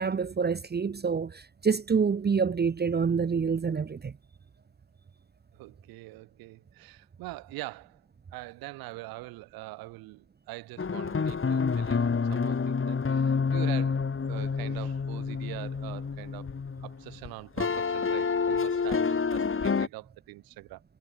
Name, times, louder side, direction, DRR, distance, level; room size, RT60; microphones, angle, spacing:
voice 1, 0.0-4.1, right 5 dB, 30° right, 0.7 m, -27 dB
voice 2, 5.5-8.0 8.3-16.5 16.8-20.8, right 20 dB, 85° right, 1.3 m, -43 dB
sound 1, 10.8-17.3 17.6-19.9, left 5 dB, 35° left, 1.9 m, -28 dB
hypercardioid pair, 45°, 35 cm